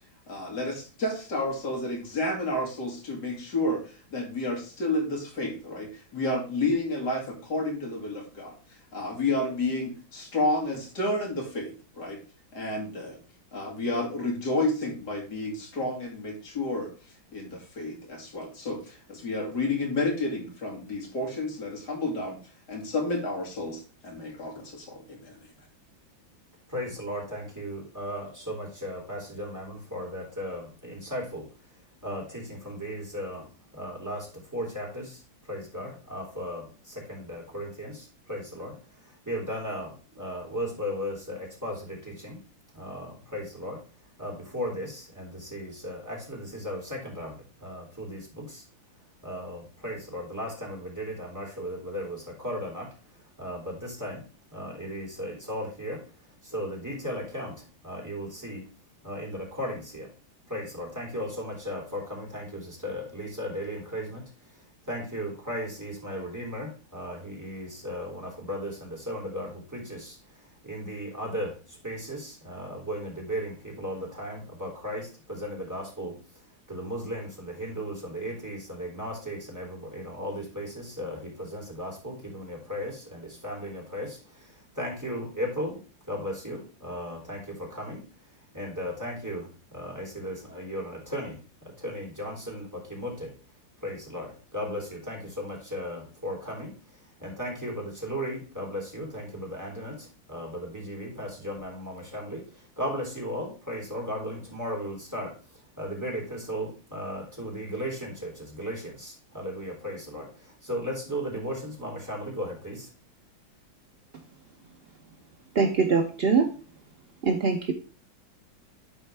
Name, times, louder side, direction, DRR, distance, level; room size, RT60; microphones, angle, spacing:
voice 1, 0.3-3.8 4.1-8.5 8.9-12.2 12.5-13.2 13.5-16.9 17.3-22.4 22.7-25.4, left 2 dB, 55° left, 0 dB, 2.9 m, -30 dB
voice 2, 26.7-31.4 32.0-33.4 33.7-34.3 34.5-35.2 35.5-38.8 39.0-42.4 42.7-43.8 44.2-48.6 49.2-52.9 53.4-54.2 54.5-56.0 56.4-58.6 59.0-60.1 60.5-64.2 64.9-70.2 70.6-76.1 76.7-85.8 86.1-88.0 88.5-93.3 93.8-96.7 97.2-105.3 105.8-112.9, equal, 10° right, -2 dB, 3.1 m, -36 dB
voice 3, 115.5-116.5 117.2-117.7, right 5 dB, 70° right, 4 dB, 0.5 m, -23 dB
12.0 x 4.3 x 3.3 m, 0.37 s
omnidirectional pair, 2.2 m